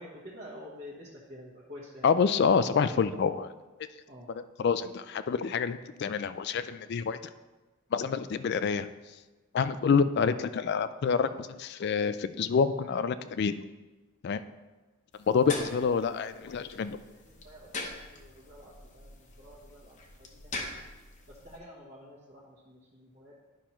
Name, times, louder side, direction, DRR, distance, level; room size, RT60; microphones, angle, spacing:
voice 1, 0.0-2.1 2.8-2.9 4.1-4.3 16.6-16.8 17.4-20.8 21.3-23.5, left 1 dB, 45° right, -7 dB, 1.2 m, -49 dB
voice 2, 2.0-3.5 4.3-7.3 7.9-8.9 9.5-13.6 14.2-14.4 15.3-17.0, left 6 dB, 50° left, 12 dB, 0.3 m, -27 dB
sound 1, 15.1-21.6, left 2 dB, 35° left, 0.8 m, -42 dB
10.5 x 5.7 x 3.0 m, 1.2 s
head